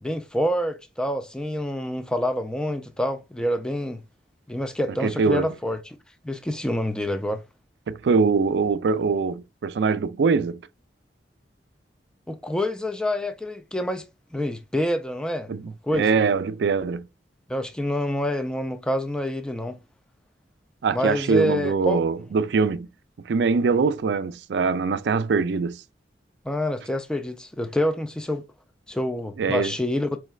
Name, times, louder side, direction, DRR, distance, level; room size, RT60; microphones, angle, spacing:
voice 1, 0.0-4.0 4.5-5.8 6.2-7.4 12.3-14.0 14.3-15.5 15.8-16.2 17.5-19.8 20.9-22.0 26.5-28.4 28.9-30.2, left 1 dB, 5° left, 0.3 m, -27 dB
voice 2, 5.0-5.5 7.9-10.6 15.5-17.0 20.8-22.9 23.3-25.8 29.4-29.7, right 5 dB, 70° right, 0.4 m, -23 dB
4.6 x 3.1 x 2.3 m
head